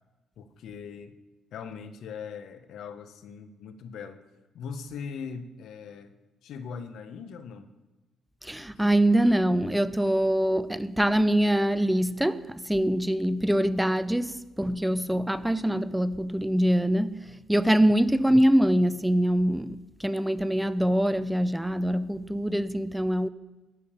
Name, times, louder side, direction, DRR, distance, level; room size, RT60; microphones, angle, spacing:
voice 1, 0.4-1.1 1.5-4.2 4.5-6.1 6.4-7.7 8.8-8.9 17.8-17.9, left 6 dB, 75° left, 0.9 m, -40 dB
voice 2, 8.4-23.3, right 1 dB, 5° right, 0.4 m, -24 dB
12.5 x 5.2 x 8.6 m
cardioid pair, 90°, 0 cm